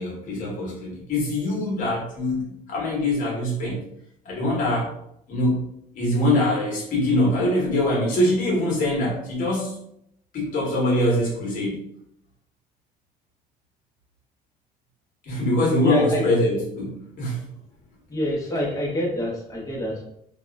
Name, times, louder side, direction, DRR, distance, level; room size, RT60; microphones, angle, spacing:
voice 1, 0.0-3.8 4.2-4.9 5.3-5.7 5.9-9.8 10.3-11.8 15.2-17.4, left 1 dB, 55° left, -3 dB, 0.9 m, -23 dB
voice 2, 15.8-16.2 18.1-20.0, left 1 dB, 20° left, -2 dB, 0.8 m, -26 dB
2.9 x 2.2 x 2.2 m, 0.74 s
cardioid pair, 110°, 17 cm